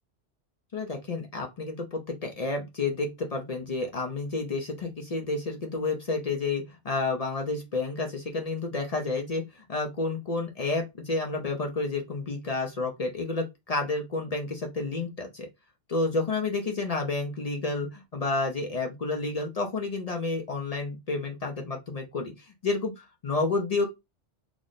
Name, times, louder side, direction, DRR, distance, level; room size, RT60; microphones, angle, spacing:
voice 1, 0.7-15.5 15.9-23.9, left 3 dB, 40° left, 0.6 m, -30 dB
3.1 x 2.0 x 3.9 m
omnidirectional pair, 1.2 m